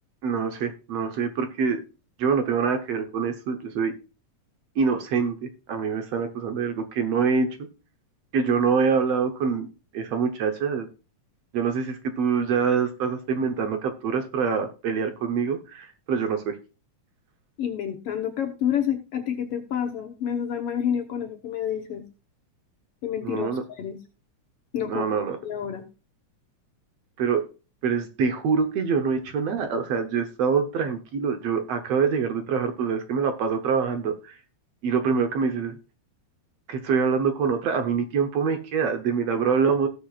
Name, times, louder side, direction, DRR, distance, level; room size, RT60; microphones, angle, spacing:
voice 1, 0.2-1.8 2.2-3.9 4.8-7.5 8.3-9.7 9.9-10.9 11.5-16.6 23.2-23.6 24.9-25.4 27.2-27.4 27.8-34.4 34.8-35.8 36.7-39.9, right 6 dB, 65° right, 7 dB, 1.8 m, -25 dB
voice 2, 17.6-22.0 23.0-24.0 24.7-25.8, left 9 dB, 60° left, 5 dB, 1.7 m, -29 dB
17.5 x 6.9 x 2.4 m, 0.32 s
omnidirectional pair, 3.6 m